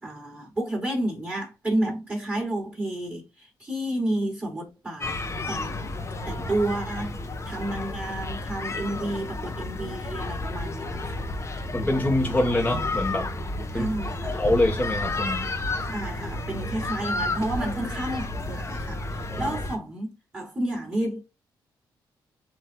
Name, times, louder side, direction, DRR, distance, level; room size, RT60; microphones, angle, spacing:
voice 1, 0.0-5.1 5.5-5.9 6.3-7.2 7.4-11.3 13.7-14.4 15.9-21.2, right 1 dB, 20° right, 3.0 m, -31 dB
sound 1, 5.0-19.8, left 2 dB, 35° left, 0.9 m, -31 dB
voice 2, 11.7-13.3 13.7-13.9 14.3-15.5 19.3-19.5, left 1 dB, 20° left, 1.2 m, -25 dB
7.9 x 2.6 x 2.2 m
cardioid pair, 85°, 8 cm